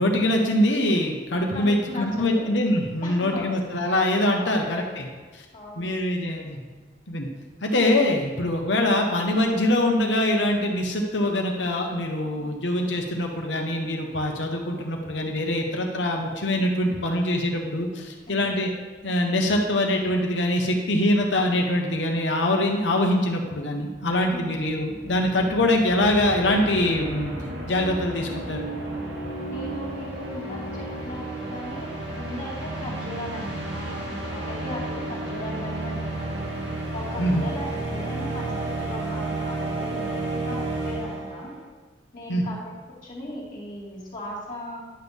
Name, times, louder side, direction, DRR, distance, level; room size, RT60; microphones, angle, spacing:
voice 1, 0.0-5.0 5.3-5.4 5.8-6.6 7.1-7.3 7.6-18.7 19.0-27.3 27.7-28.7 37.2-37.5 42.3-42.4, left 1 dB, 75° left, 2 dB, 1.2 m, -23 dB
voice 2, 1.5-2.5 3.0-3.6 4.4-5.1 5.5-5.9 12.2-12.5 18.3-18.5 24.3-24.6 29.5-36.4 36.9-41.5 42.1-44.8, left 1 dB, 45° left, -5 dB, 2.2 m, -37 dB
sound 1, 24.2-41.5, right 2 dB, 90° right, 2.1 m, -32 dB
10.5 x 6.4 x 3.5 m, 1.4 s
head